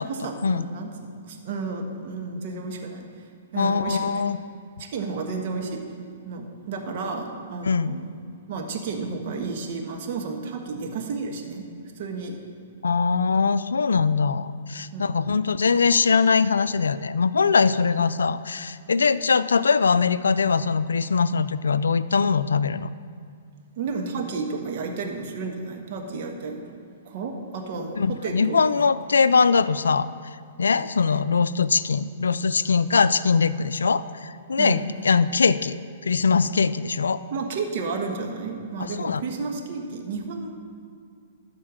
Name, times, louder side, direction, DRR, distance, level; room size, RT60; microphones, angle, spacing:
voice 1, 0.1-3.0 3.5-4.0 4.8-5.8 6.2-8.1 8.5-11.7 11.9-12.4 14.9-15.4 23.8-26.6 27.0-28.9 34.6-34.8 37.3-40.5, right 4 dB, 55° right, 3 dB, 1.3 m, -32 dB
voice 2, 3.6-4.4 7.6-7.9 12.8-22.9 28.0-30.1 30.6-35.8 36.0-37.2 39.0-39.2, left 5 dB, 85° left, 15 dB, 0.3 m, -22 dB
12.5 x 4.5 x 7.4 m, 2.2 s
hypercardioid pair, 125°, 0 cm